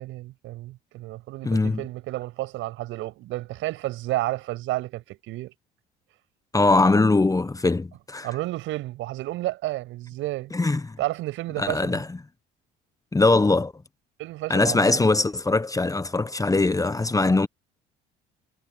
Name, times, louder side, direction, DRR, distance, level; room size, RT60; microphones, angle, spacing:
voice 1, 0.0-5.5 8.2-10.5 11.0-12.0 14.2-15.0, right 17 dB, 70° right, 6.9 m, -31 dB
voice 2, 1.4-1.8 6.5-8.3 10.5-11.0 11.6-12.1 13.1-13.7 14.5-17.5, left 3 dB, 15° left, 1.3 m, -21 dB
hypercardioid pair, 65°, 21 cm